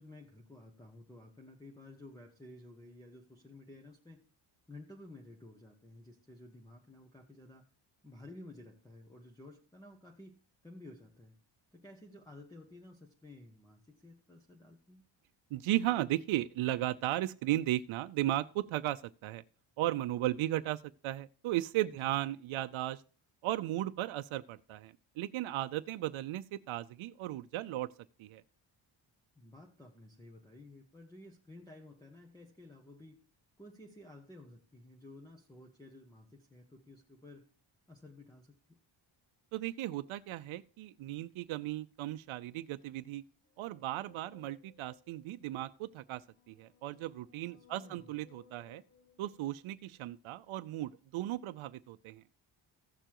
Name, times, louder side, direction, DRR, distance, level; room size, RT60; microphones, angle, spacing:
voice 1, 0.0-4.2 4.7-7.6 8.0-11.4 11.7-15.0 21.8-22.1 29.3-33.2 33.6-37.5 37.9-38.8 47.5-48.1, left 1 dB, 10° left, 1.0 m, -54 dB
voice 2, 15.5-19.4 19.8-23.0 23.4-27.9 28.2-28.4 39.5-43.2 43.6-48.8 49.2-52.2, right 14 dB, 85° right, 0.6 m, -36 dB
sound 1, 43.6-45.2 46.1-50.0, left 6 dB, 25° left, 1.3 m, -64 dB
15.5 x 6.8 x 3.0 m
wide cardioid pair, 145°, 47 cm